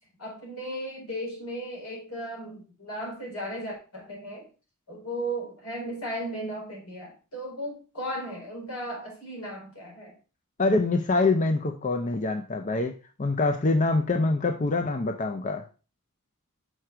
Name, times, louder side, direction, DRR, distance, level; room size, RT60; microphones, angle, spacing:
voice 1, 0.2-4.5 4.9-10.2, right 1 dB, 85° left, -3 dB, 4.1 m, -36 dB
voice 2, 10.6-15.6, left 3 dB, 35° left, 5 dB, 0.5 m, -25 dB
6.4 x 4.7 x 4.4 m, 0.34 s
head